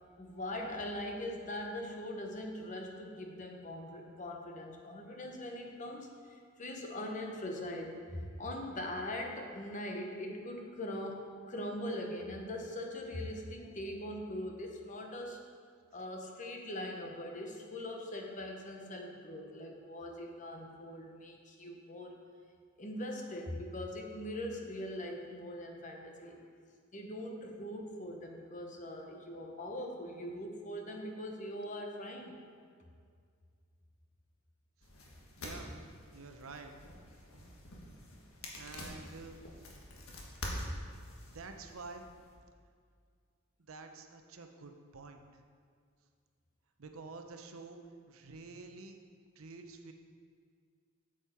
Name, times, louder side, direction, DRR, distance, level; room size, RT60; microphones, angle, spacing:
voice 1, 0.2-15.4 15.9-22.2 22.8-26.4 26.9-32.4 40.7-40.8, left 1 dB, 35° left, 2 dB, 1.0 m, -41 dB
sound 1, 34.8-42.4, left 1 dB, 85° left, 1.5 m, -46 dB
voice 2, 35.4-35.7 36.1-36.7 38.6-39.6 41.3-42.1 43.7-45.4 46.8-49.0 49.4-49.9, right 3 dB, 85° right, 5 dB, 0.8 m, -49 dB
8.3 x 7.6 x 4.4 m, 2.1 s
head